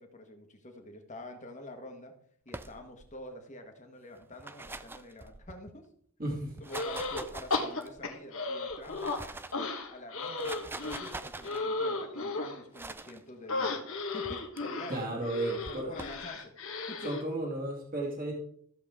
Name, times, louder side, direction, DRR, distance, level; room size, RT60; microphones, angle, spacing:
voice 1, 0.0-2.1 2.4-5.9 6.6-9.2 9.9-13.9 14.1-15.1 15.7-16.5 16.9-17.2, left 1 dB, 30° left, 4 dB, 1.5 m, -47 dB
sound 1, 2.5-3.1 4.2-5.7 6.4-8.1 8.7-9.6 10.2-11.6 12.7-13.2 14.2-14.6 15.6-16.2, right 2 dB, 10° right, 0.3 m, -44 dB
voice 2, 6.2-6.5 14.9-15.9 17.0-18.3, right 1 dB, 40° right, -1 dB, 2.2 m, -33 dB
sound 2, 6.7-7.2 7.5-9.2 9.5-12.6 13.5-17.2, left 3 dB, 65° left, 1.5 m, -35 dB
14.0 x 7.3 x 3.7 m, 0.63 s
head